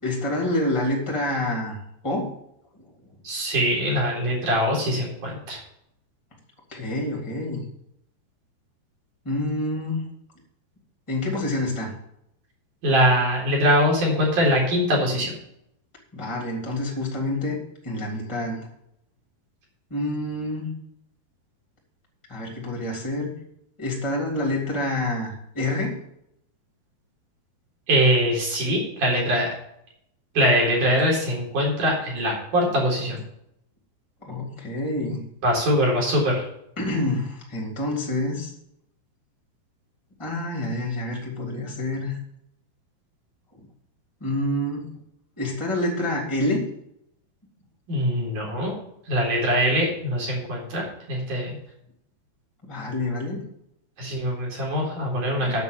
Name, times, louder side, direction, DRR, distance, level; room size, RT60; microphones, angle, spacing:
voice 1, 0.0-1.8 2.0-2.3 6.7-7.6 9.2-10.0 11.1-11.9 16.1-18.7 19.9-20.7 22.3-23.4 23.8-26.0 34.2-35.2 36.8-38.5 40.2-42.2 44.2-44.9 45.4-46.6 52.6-53.4 55.3-55.6, left 1 dB, 10° left, -1 dB, 2.1 m, -27 dB
voice 2, 3.2-5.6 12.8-15.3 27.9-29.5 30.3-33.2 35.4-36.4 47.9-48.7 49.1-51.6 54.0-55.6, equal, 45° right, -2 dB, 5.1 m, -22 dB
9.5 x 8.4 x 6.8 m, 0.76 s
omnidirectional pair, 5.1 m